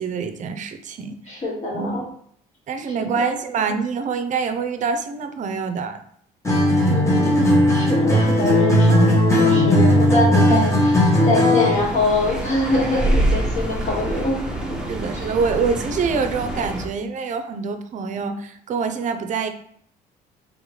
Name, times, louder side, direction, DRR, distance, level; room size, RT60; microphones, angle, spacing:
voice 1, 0.0-1.2 1.7-2.1 2.7-6.0 6.6-7.1 10.5-10.7 14.9-19.5, right 5 dB, 45° right, 8 dB, 0.5 m, -25 dB
voice 2, 1.3-2.0 3.1-3.3 6.9-10.9 11.2-15.3, left 2 dB, 45° left, -4 dB, 1.7 m, -24 dB
Acoustic guitar, 6.4-11.8, left 1 dB, 15° left, 1.1 m, -16 dB
sound 1, 11.7-16.9, right 1 dB, 5° right, 0.7 m, -26 dB
3.7 x 3.5 x 3.1 m, 0.64 s
cardioid pair, 110°, 17 cm